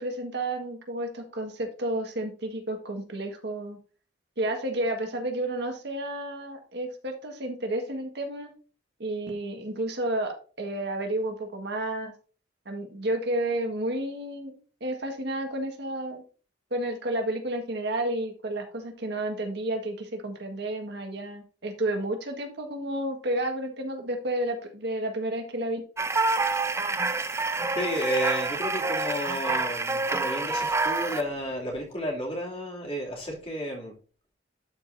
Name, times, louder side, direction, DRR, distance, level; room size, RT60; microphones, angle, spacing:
voice 1, 0.0-3.8 4.4-8.5 9.0-12.1 12.6-16.2 16.7-25.8, right 1 dB, 65° right, 4 dB, 1.6 m, -31 dB
sound 1, 26.0-31.2, right 3 dB, 15° right, 0.5 m, -27 dB
voice 2, 27.7-33.9, equal, 30° left, -2 dB, 2.7 m, -32 dB
12.0 x 4.8 x 2.6 m, 0.38 s
head